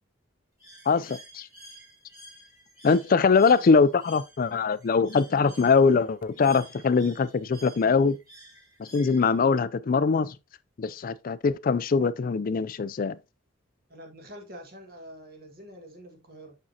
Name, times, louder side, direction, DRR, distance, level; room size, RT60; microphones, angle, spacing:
Bird, 0.6-9.6, right 1 dB, 15° right, 3.5 m, -51 dB
voice 1, 0.9-1.5 2.8-8.2 8.8-10.4 10.8-13.2, left 5 dB, 45° left, 0.4 m, -22 dB
voice 2, 3.0-4.0 13.9-16.6, equal, 50° right, 1.8 m, -46 dB
6.3 x 6.2 x 2.8 m
head